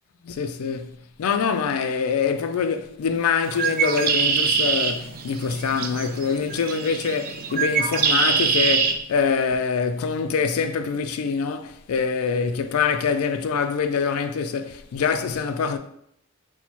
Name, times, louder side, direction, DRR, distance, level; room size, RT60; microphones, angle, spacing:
voice 1, 0.2-0.9 1.2-15.8, left 5 dB, 90° left, 0.4 m, -24 dB
Bird, 3.4-8.9, right 6 dB, 45° right, 0.4 m, -24 dB
4.2 x 2.1 x 4.4 m
head